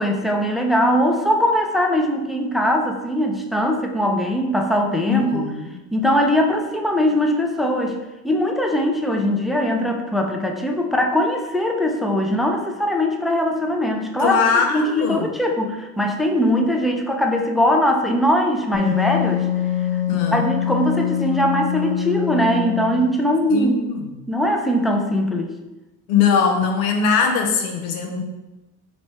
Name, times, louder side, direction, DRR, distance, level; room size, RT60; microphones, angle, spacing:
voice 1, 0.0-5.4 5.9-8.0 8.2-19.5 20.1-23.8 24.3-25.5, equal, ahead, 2 dB, 0.5 m, -21 dB
voice 2, 5.1-5.8 14.2-15.3 20.1-20.4 23.5-24.0 26.1-28.2, left 6 dB, 90° left, 3 dB, 0.7 m, -21 dB
Wind instrument woodwind instrument, 18.7-23.2, left 10 dB, 20° right, 0.9 m, -24 dB
3.2 x 2.9 x 4.2 m, 1.1 s
supercardioid pair, 70°, 41 cm